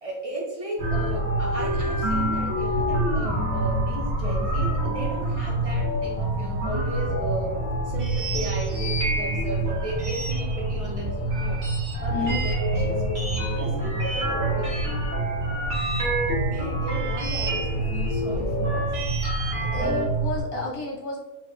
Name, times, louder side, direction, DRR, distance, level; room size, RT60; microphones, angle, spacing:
voice 1, 0.0-11.6 12.0-15.1 16.2-19.0, right 1 dB, 35° right, -3 dB, 0.6 m, -35 dB
sound 1, 0.8-20.4, right 2 dB, 20° left, 1.5 m, -28 dB
sound 2, 0.8-20.0, equal, 65° right, 1.7 m, -30 dB
voice 2, 12.1-12.4 19.7-21.2, left 2 dB, 80° left, -2 dB, 1.5 m, -30 dB
4.3 x 3.1 x 2.2 m, 1.2 s
omnidirectional pair, 1.6 m